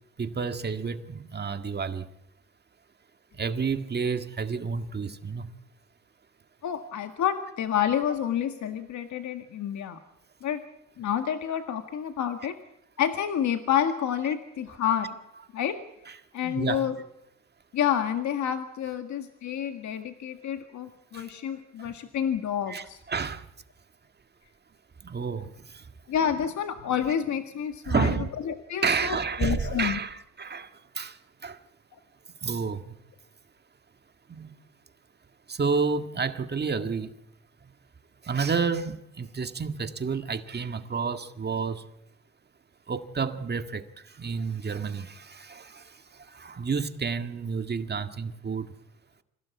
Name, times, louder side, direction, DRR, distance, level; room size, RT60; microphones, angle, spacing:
voice 1, 0.2-2.1 3.3-5.5 16.1-16.9 21.1-21.3 21.8-21.9 22.7-23.5 25.0-25.9 27.8-28.3 28.8-31.6 32.4-33.0 34.3-34.5 35.5-37.1 38.2-41.8 42.9-48.7, right 5 dB, 35° right, 1.8 m, -30 dB
voice 2, 6.6-10.0 10.4-10.6 11.0-12.6 13.0-15.2 15.5-15.8 16.3-16.9 17.7-23.0 26.1-28.1 28.5-30.0, left 9 dB, 70° left, 1.8 m, -29 dB
26.5 x 16.5 x 8.4 m
cardioid pair, 90°, 30 cm